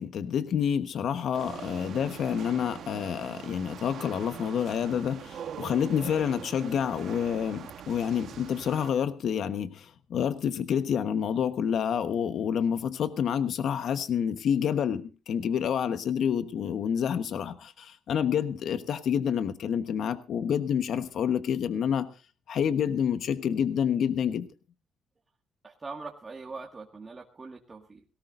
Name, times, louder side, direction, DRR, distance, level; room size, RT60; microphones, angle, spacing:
voice 1, 0.0-22.1 22.5-24.5, left 8 dB, 65° left, 10 dB, 1.1 m, -28 dB
sound 1, 1.3-8.9, right 8 dB, 65° right, 1.2 m, -42 dB
voice 2, 25.6-28.0, right 4 dB, 30° right, 1 dB, 1.9 m, -42 dB
18.5 x 17.5 x 2.5 m, 0.33 s
cardioid pair, 90°, 0 cm